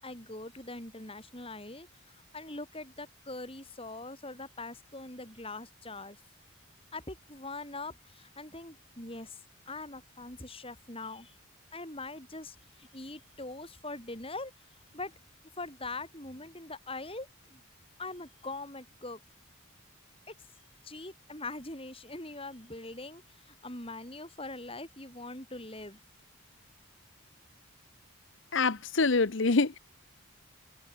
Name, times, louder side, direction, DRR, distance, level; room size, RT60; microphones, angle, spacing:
voice 1, 0.0-6.2 6.9-9.4 9.7-11.4 11.7-15.1 15.6-17.6 18.0-19.2 20.3-20.4 20.8-26.0, left 2 dB, 25° left, 7.7 m, -42 dB
voice 2, 28.5-29.8, left 3 dB, 60° left, 0.9 m, -25 dB
head